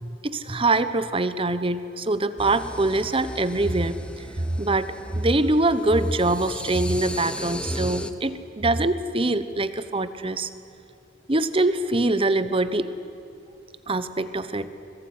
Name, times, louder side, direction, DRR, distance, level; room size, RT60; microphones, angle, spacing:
voice 1, 0.0-10.5 11.3-12.9 13.9-14.7, right 2 dB, 30° right, 13 dB, 1.0 m, -24 dB
sound 1, 2.4-8.1, left 1 dB, 5° left, 1.0 m, -37 dB
25.0 x 21.0 x 9.7 m, 2.7 s
head